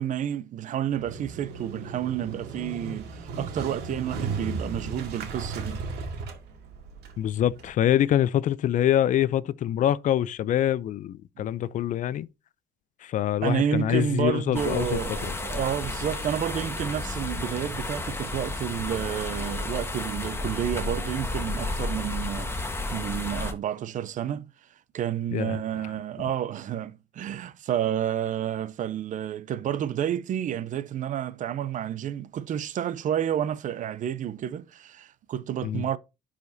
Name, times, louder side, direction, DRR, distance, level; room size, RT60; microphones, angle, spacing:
voice 1, 0.0-5.8 11.4-11.5 13.4-22.5 22.9-24.5 24.9-36.0, right 10 dB, 50° right, 0.5 m, -30 dB
Motorcycle, 0.9-7.7, right 4 dB, 75° right, 2.0 m, -35 dB
voice 2, 7.2-12.3 13.0-15.3 25.3-25.6 35.6-35.8, left 11 dB, 50° left, 0.4 m, -25 dB
sound 1, 14.5-23.5, left 2 dB, 15° left, 1.2 m, -32 dB
10.5 x 5.0 x 2.6 m
cardioid pair, 110°, 17 cm